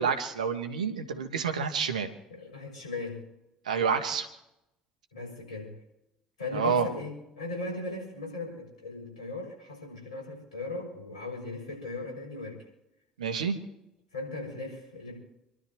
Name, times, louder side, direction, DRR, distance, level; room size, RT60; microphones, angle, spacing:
voice 1, 0.0-2.1 3.6-4.3 6.5-6.9 13.2-13.5, right 6 dB, 85° right, 6 dB, 1.5 m, -28 dB
voice 2, 2.3-3.2 5.1-5.8 6.4-12.6 14.1-15.2, left 2 dB, 85° left, 0 dB, 6.6 m, -38 dB
28.5 x 12.5 x 3.1 m, 0.89 s
figure-of-eight pair, 55°, 4 cm